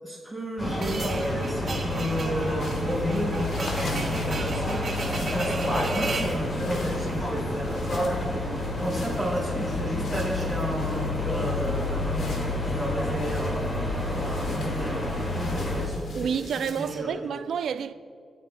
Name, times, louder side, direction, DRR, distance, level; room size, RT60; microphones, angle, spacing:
voice 1, 0.0-4.8 5.2-8.3 8.8-16.3 16.8-17.2, equal, 5° left, 3.1 m, -32 dB
sound 1, 0.6-15.9, left 1 dB, 35° left, 2.1 m, -29 dB
sound 2, 0.8-6.4, right 3 dB, 50° right, 2.2 m, -34 dB
sound 3, 2.6-17.0, left 3 dB, 75° left, 1.3 m, -44 dB
voice 2, 16.1-17.9, right 7 dB, 85° right, 0.4 m, -29 dB
23.0 x 9.2 x 2.2 m
wide cardioid pair, 130°, 0 cm